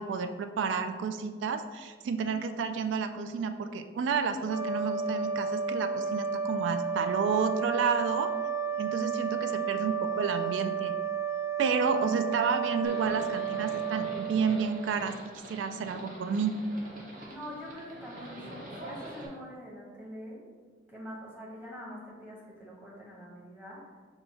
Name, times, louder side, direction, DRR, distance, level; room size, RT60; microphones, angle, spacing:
voice 1, 0.0-8.3 8.8-10.9 11.6-15.2 15.5-16.6, right 5 dB, 90° right, 8 dB, 0.3 m, -30 dB
sound 1, 4.4-15.0, right 6 dB, 10° left, 0.6 m, -32 dB
Livestock farm animals working animals, 12.8-19.3, right 1 dB, 45° right, 0.8 m, -45 dB
voice 2, 17.3-20.4 20.9-23.9, equal, 10° right, -5 dB, 1.0 m, -44 dB
5.4 x 2.3 x 4.1 m, 1.5 s
head